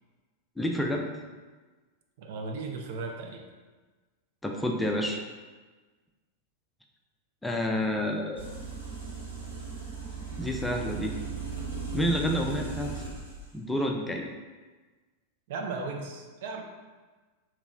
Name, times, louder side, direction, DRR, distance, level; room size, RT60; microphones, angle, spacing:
voice 1, 0.6-1.1 4.4-5.2 7.4-8.4 10.4-11.2 11.9-13.0 13.5-14.3, left 1 dB, 5° left, 0 dB, 0.4 m, -29 dB
voice 2, 2.2-3.4 15.5-16.6, right 3 dB, 55° right, 2 dB, 0.5 m, -36 dB
sound 1, 8.4-13.4, right 5 dB, 75° right, 1.1 m, -37 dB
3.0 x 3.0 x 3.6 m, 1.3 s
figure-of-eight pair, 90°, 0 cm